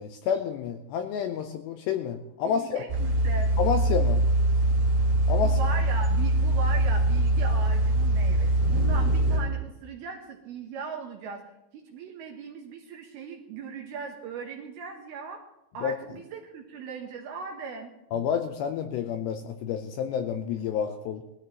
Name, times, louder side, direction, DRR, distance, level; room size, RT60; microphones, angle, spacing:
voice 1, 0.0-2.8 3.6-4.2 5.3-5.6 15.8-15.9 18.1-21.2, left 7 dB, 85° left, 6 dB, 2.5 m, -29 dB
voice 2, 2.4-3.5 5.4-11.4 11.7-15.4 15.7-17.9, right 5 dB, 75° right, 2 dB, 2.4 m, -38 dB
sound 1, 2.9-9.4, right 1 dB, 20° right, 5.0 m, -23 dB
20.5 x 13.5 x 3.0 m, 0.95 s
omnidirectional pair, 5.6 m